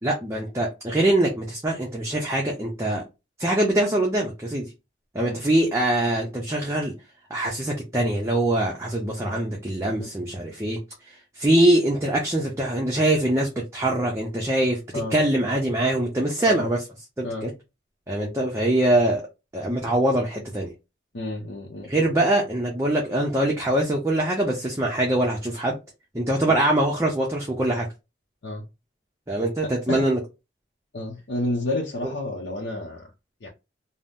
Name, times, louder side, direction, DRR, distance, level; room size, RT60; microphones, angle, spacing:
voice 1, 0.0-3.0 3.4-4.7 5.1-6.9 7.3-10.8 11.1-14.8 15.1-16.8 17.2-17.5 18.1-19.2 19.5-20.7 21.8-25.7 26.1-27.9 29.3-30.2 32.0-32.1, right 1 dB, 15° right, 0.5 m, -23 dB
voice 2, 21.1-21.9 28.4-28.6 29.6-30.1 30.9-33.1 33.4-33.5, left 2 dB, 65° left, 0.6 m, -30 dB
2.7 x 2.0 x 3.4 m
head